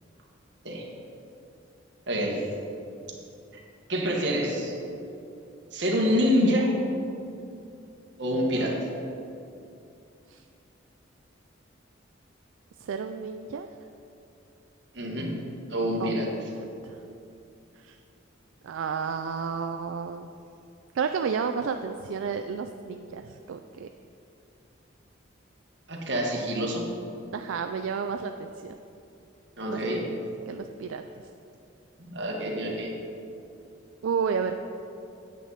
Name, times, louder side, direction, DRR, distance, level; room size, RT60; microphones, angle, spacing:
voice 1, 2.1-2.6 3.5-3.6 3.9-4.8 5.7-6.7 8.2-8.9 14.9-15.4 15.7-16.3 25.9-26.9 29.6-30.1 32.0-32.9, equal, 60° right, -1 dB, 1.5 m, -26 dB
voice 2, 12.8-13.7 16.0-16.2 16.8-17.0 17.8-18.0 18.6-20.3 20.9-23.9 27.3-28.8 29.7-30.0 30.5-31.0 34.0-34.6, right 6 dB, 80° right, 7 dB, 0.3 m, -31 dB
9.2 x 7.9 x 4.1 m, 2.7 s
head